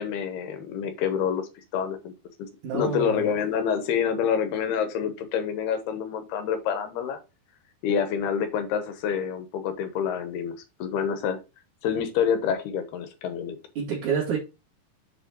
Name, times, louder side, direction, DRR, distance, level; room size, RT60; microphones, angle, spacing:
voice 1, 0.0-2.1 2.7-7.2 7.8-11.4 11.8-13.6, left 7 dB, 80° left, 3.0 m, -27 dB
voice 2, 2.6-3.3 13.7-14.4, right 6 dB, 55° right, 3.3 m, -28 dB
7.3 x 4.9 x 4.4 m
omnidirectional pair, 4.7 m